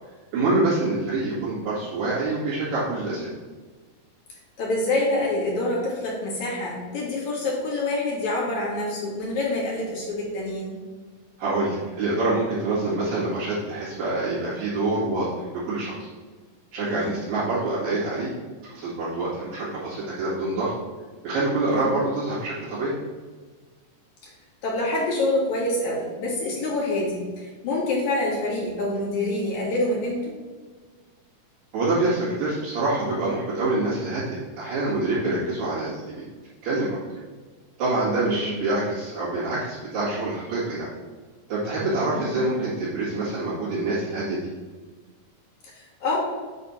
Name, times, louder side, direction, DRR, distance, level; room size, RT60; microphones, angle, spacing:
voice 1, 0.3-3.3 11.4-16.1 16.7-18.3 18.7-20.7 21.2-23.0 31.7-36.0 36.6-37.0 37.8-40.9 41.5-44.4, right 2 dB, 80° right, -11 dB, 3.8 m, -26 dB
voice 2, 4.6-10.7 16.8-17.1 21.7-21.9 24.6-30.3 38.1-38.6 42.2-42.4 45.7-46.2, left 2 dB, 60° left, -6 dB, 2.9 m, -26 dB
8.0 x 3.5 x 5.7 m, 1.4 s
omnidirectional pair, 4.0 m